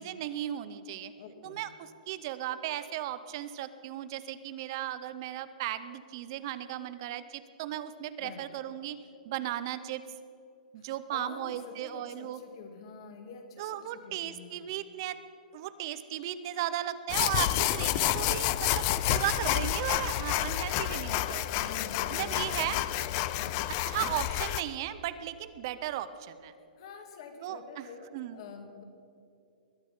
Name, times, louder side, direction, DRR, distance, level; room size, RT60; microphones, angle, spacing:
voice 1, 0.0-1.1 1.4-9.0 9.2-10.0 10.7-12.4 13.6-15.2 15.5-21.7 22.1-22.8 23.9-26.5 27.4-27.8 28.1-28.4, right 12 dB, 30° right, 13 dB, 0.5 m, -36 dB
voice 2, 1.2-1.6 8.2-8.5 10.8-14.8 21.5-22.8 23.3-23.8 26.8-28.8, left 5 dB, 40° left, 5 dB, 1.7 m, -47 dB
sound 1, 17.1-24.6, left 14 dB, 25° left, 0.3 m, -29 dB
21.0 x 10.5 x 5.4 m, 2.6 s
hypercardioid pair, 175°, 4 cm